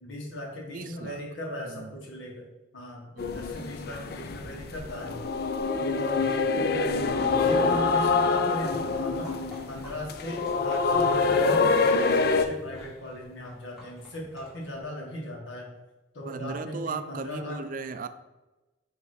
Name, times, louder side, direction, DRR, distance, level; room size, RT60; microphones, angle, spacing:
voice 1, 0.0-2.5 2.7-5.2 5.8-9.3 9.7-15.7 16.1-17.6, left 1 dB, 80° left, -2 dB, 1.7 m, -38 dB
voice 2, 0.7-1.2 1.7-1.9 3.2-3.4 16.3-18.1, right 4 dB, 45° right, 11 dB, 0.3 m, -36 dB
sound 1, 3.2-12.5, left 4 dB, 55° left, 0.4 m, -25 dB
sound 2, 8.5-14.8, equal, ahead, 2.1 m, -49 dB
5.4 x 3.3 x 5.5 m, 1.1 s
head